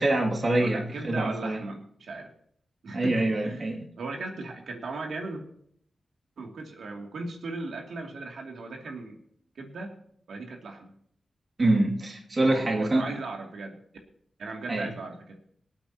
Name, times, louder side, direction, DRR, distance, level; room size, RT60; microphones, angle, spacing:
voice 1, 0.0-1.6 2.9-3.9 11.6-13.1 14.7-14.9, right 2 dB, 35° right, -1 dB, 2.6 m, -25 dB
voice 2, 0.6-2.3 2.8-3.2 3.4-3.7 4.0-5.4 6.4-9.2 9.6-9.9 10.3-10.9 12.4-13.8 14.4-15.4, right 3 dB, 90° right, 1 dB, 2.7 m, -37 dB
26.0 x 8.8 x 3.0 m, 0.65 s
wide cardioid pair, 155°, 0 cm